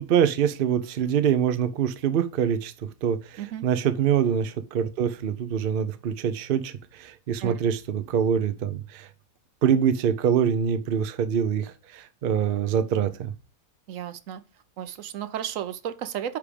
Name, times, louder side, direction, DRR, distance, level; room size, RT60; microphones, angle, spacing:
voice 1, 0.0-2.7 3.0-9.1 9.6-13.3, right 8 dB, 85° right, 0.4 m, -25 dB
voice 2, 13.9-14.4 14.8-16.4, right 10 dB, 65° right, 0.9 m, -33 dB
9.7 x 3.5 x 5.0 m
omnidirectional pair, 1.7 m